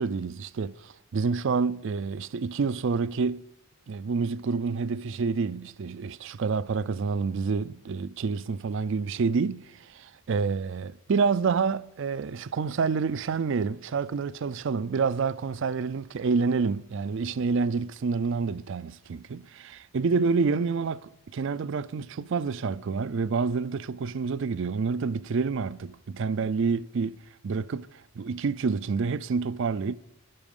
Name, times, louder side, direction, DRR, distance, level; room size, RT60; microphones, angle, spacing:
voice 1, 0.0-3.4 3.9-10.0 10.3-27.2 27.4-27.9 28.2-30.0, right 5 dB, 55° right, 0.4 m, -28 dB
12.0 x 10.5 x 5.3 m
head